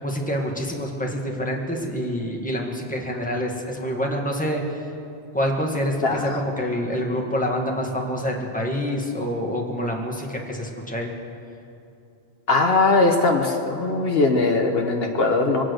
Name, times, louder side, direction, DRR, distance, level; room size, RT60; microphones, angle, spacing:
voice 1, 0.0-4.6 5.3-11.1, equal, 5° left, 0 dB, 1.7 m, -26 dB
voice 2, 6.0-6.4 12.5-15.6, left 3 dB, 60° left, 3 dB, 1.3 m, -20 dB
24.0 x 8.8 x 6.4 m, 2.6 s
omnidirectional pair, 1.1 m